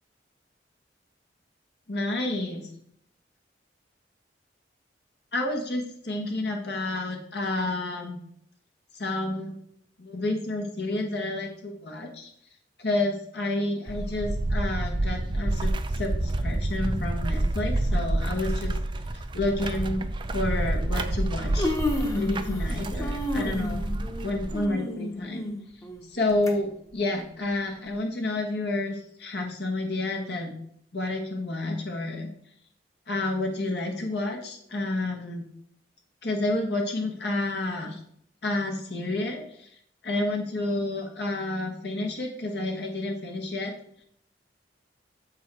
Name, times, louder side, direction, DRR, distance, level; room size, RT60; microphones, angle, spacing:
voice 1, 1.9-2.7 5.3-8.2 8.9-9.5 10.0-12.3 12.8-18.8 19.3-21.7 22.1-23.8 24.2-25.5 26.1-30.6 30.9-32.3 33.1-35.4 36.2-38.0 38.4-39.7 40.0-43.7, left 2 dB, 65° left, 1 dB, 1.2 m, -30 dB
sound 1, 13.9-24.7, right 1 dB, 30° right, 0.4 m, -28 dB
Human voice, 17.8-18.0 19.0-19.1 19.7-19.9 20.9-21.0 21.3-22.7 23.0-26.5 26.9-27.0 27.9-28.0, left 1 dB, 20° left, 1.0 m, -31 dB
7.4 x 4.6 x 4.2 m, 0.68 s
head